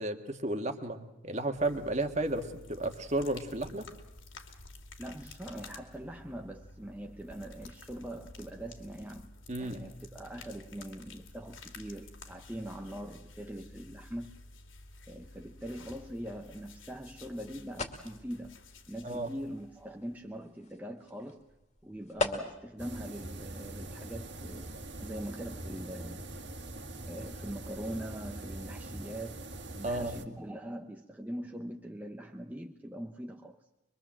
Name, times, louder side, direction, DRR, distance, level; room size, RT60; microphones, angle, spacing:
voice 1, 0.0-3.9 9.5-9.8 19.0-19.3 29.8-30.2, right 2 dB, 35° right, 1.7 m, -33 dB
sound 1, 1.5-20.4, left 2 dB, 75° left, 2.6 m, -52 dB
voice 2, 5.0-9.3 9.6-14.4 15.1-18.6 18.9-21.4 21.8-24.7 25.0-26.2 27.0-29.5 29.8-33.6, right 1 dB, 10° right, 0.8 m, -42 dB
sound 2, 16.4-22.8, left 2 dB, 35° left, 2.4 m, -41 dB
sound 3, 22.8-30.3, right 1 dB, 60° right, 2.0 m, -43 dB
24.5 x 23.5 x 7.6 m
head